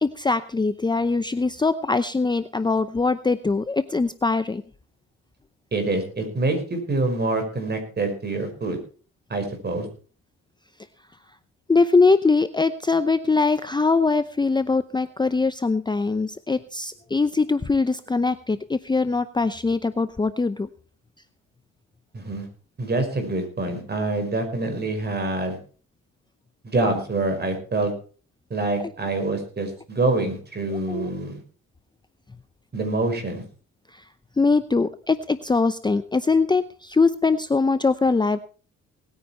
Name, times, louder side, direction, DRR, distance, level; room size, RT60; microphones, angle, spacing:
voice 1, 0.0-4.6 11.7-20.7 28.8-28.9 30.9-31.1 33.9-34.0 34.4-38.4, left 4 dB, 15° left, 12 dB, 0.6 m, -22 dB
voice 2, 5.7-8.8 9.3-9.9 22.1-22.5 22.8-25.6 26.6-27.9 28.5-31.4 32.7-33.4, right 2 dB, 35° right, 5 dB, 5.4 m, -26 dB
19.0 x 9.6 x 4.4 m, 0.40 s
cardioid pair, 90°, 30 cm